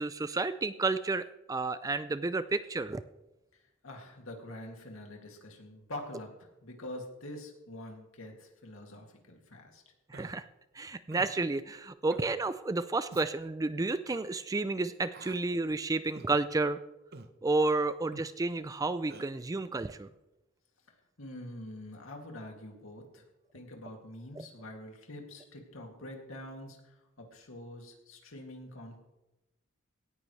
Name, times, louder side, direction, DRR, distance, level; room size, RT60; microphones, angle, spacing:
voice 1, 0.0-3.0 10.1-10.4 10.8-16.8 17.4-20.1, right 3 dB, 15° right, 14 dB, 0.4 m, -31 dB
voice 2, 3.8-9.8 21.2-23.2 23.5-29.0, left 1 dB, 85° left, 1 dB, 2.4 m, -45 dB
Human voice, 10.1-10.3 11.1-11.3 12.1-12.3 13.1-13.3 14.1-14.3 15.1-15.4 16.1-16.3 17.1-17.3 18.1-18.3 19.1-19.3, right 3 dB, 50° right, 0.9 m, -48 dB
18.0 x 14.0 x 3.2 m, 0.98 s
head